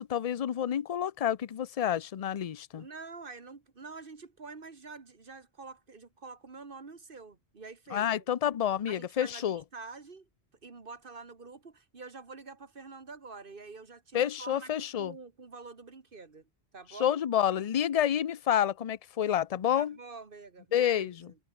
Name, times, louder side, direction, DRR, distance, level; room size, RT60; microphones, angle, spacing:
voice 1, 0.0-2.9 7.9-9.6 14.1-15.1 17.0-20.0 20.7-21.1, left 10 dB, 45° left, 0.6 m, -29 dB
voice 2, 2.8-8.1 8.9-10.3 10.6-16.5 16.7-17.2 19.8-21.4, right 4 dB, 55° right, 1.8 m, -47 dB
omnidirectional pair, 1.1 m